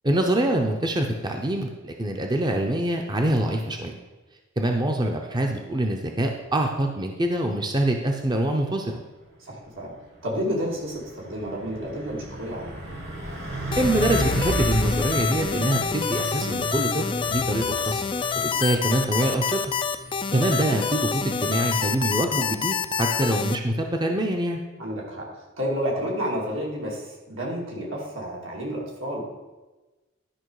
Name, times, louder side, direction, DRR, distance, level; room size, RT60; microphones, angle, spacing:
voice 1, 0.0-3.9 4.6-9.0 13.8-18.0 18.3-19.6 20.3-24.6, right 1 dB, 20° right, 3 dB, 0.6 m, -25 dB
voice 2, 9.4-9.9 10.2-12.7 24.8-25.3 25.6-29.3, equal, 80° right, -3 dB, 2.6 m, -30 dB
Truck, 9.7-24.0, right 1 dB, 60° right, 1.9 m, -34 dB
sound 1, 13.7-23.6, left 6 dB, 25° left, 0.3 m, -27 dB
11.5 x 5.4 x 4.8 m, 1.2 s
head